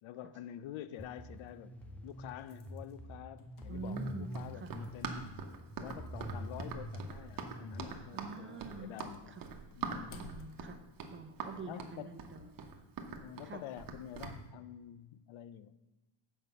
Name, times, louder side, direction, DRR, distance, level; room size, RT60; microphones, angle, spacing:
voice 1, 0.0-1.8 2.0-5.4 5.8-9.4 9.8-10.2 11.7-12.1 13.2-15.7, left 11 dB, 70° left, 15 dB, 0.7 m, -48 dB
sound 1, 1.0-1.1 1.8-5.3 5.6-5.7 7.0-7.2 7.6-8.0 8.7-12.7 13.1-13.3, left 3 dB, 40° left, 1.0 m, -57 dB
sound 2, 1.0-7.8, equal, 5° left, 0.3 m, -45 dB
voice 2, 3.7-4.7 8.1-9.4 10.1-10.8 11.1-12.5 13.4-13.6, right 4 dB, 25° right, 7 dB, 0.7 m, -46 dB
Run, 3.9-14.4, right 5 dB, 45° right, 1.0 m, -43 dB
7.9 x 5.4 x 6.7 m, 1.1 s
cardioid pair, 155°, 50 cm